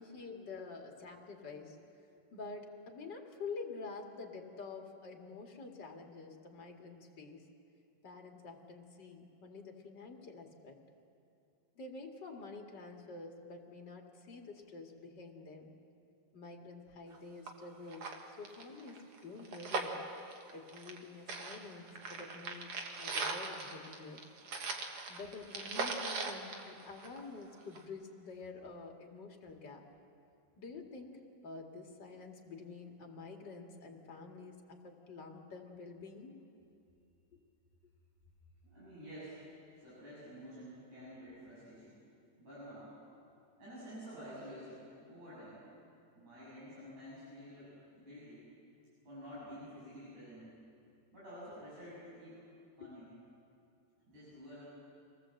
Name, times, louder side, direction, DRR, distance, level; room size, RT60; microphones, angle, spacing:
voice 1, 0.0-7.4 8.0-10.8 11.8-15.7 16.3-20.0 20.5-24.2 25.1-29.8 30.6-36.3 52.8-52.9, left 4 dB, 40° left, 1 dB, 2.5 m, -48 dB
sound 1, 17.1-17.2 17.5-17.6 17.9-21.0 21.3-27.4 27.8-27.9, right 4 dB, 55° right, 2.4 m, -40 dB
voice 2, 38.6-39.4 39.8-42.0 42.4-43.0 43.6-45.6 46.1-48.4 49.1-50.5 51.1-52.4 52.8-53.1 54.1-54.6, equal, 80° right, -10 dB, 8.8 m, -50 dB
26.0 x 18.5 x 7.7 m, 2.6 s
omnidirectional pair, 3.3 m